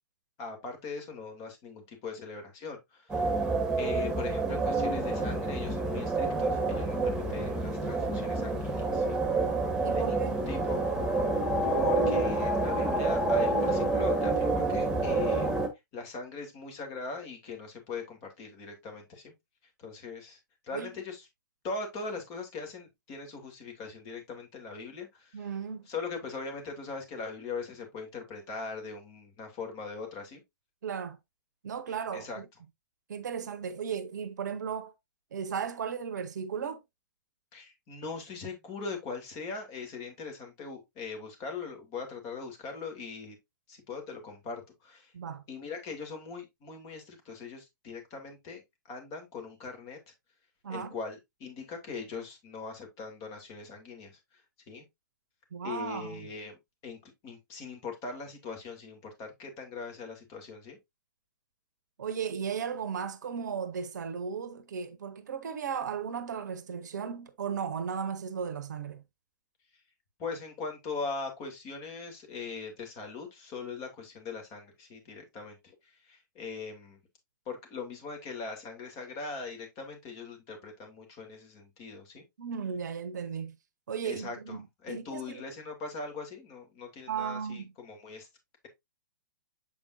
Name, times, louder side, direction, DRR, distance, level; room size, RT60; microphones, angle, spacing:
voice 1, 0.4-3.5 3.8-9.2 9.9-10.8 11.6-15.5 15.9-19.3 19.8-20.4 20.6-21.3 21.6-25.5 25.9-30.4 32.1-32.4 37.5-43.4 43.7-45.1 45.5-50.1 50.7-54.4 54.7-54.8 55.6-56.6 56.8-60.8 70.2-77.0 77.5-82.2 84.0-88.3, left 4 dB, 35° left, 2.7 m, -40 dB
sound 1, 3.1-15.7, right 2 dB, 10° right, 1.8 m, -28 dB
voice 2, 9.8-10.4 20.7-20.9 25.3-25.9 30.8-31.2 31.6-32.4 33.1-34.9 35.3-36.8 45.1-45.4 50.6-50.9 55.5-56.3 62.0-69.0 82.4-83.6 83.9-85.4 87.1-87.7, right 7 dB, 65° right, 0.9 m, -35 dB
7.1 x 5.2 x 2.6 m
figure-of-eight pair, 115°, 10 cm